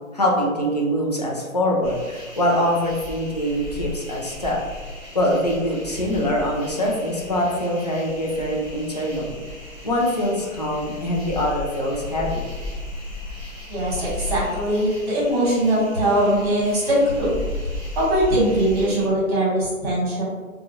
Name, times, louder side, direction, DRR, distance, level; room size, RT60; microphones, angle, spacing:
voice 1, 0.1-4.6 5.1-9.4 9.8-12.4, equal, 30° left, -3 dB, 0.4 m, -23 dB
sound 1, 1.8-19.1, left 2 dB, ahead, 1.2 m, -35 dB
voice 2, 13.7-17.3 18.0-20.2, right 1 dB, 25° right, -6 dB, 1.2 m, -21 dB
3.5 x 2.3 x 2.5 m, 1.4 s
figure-of-eight pair, 135°, 41 cm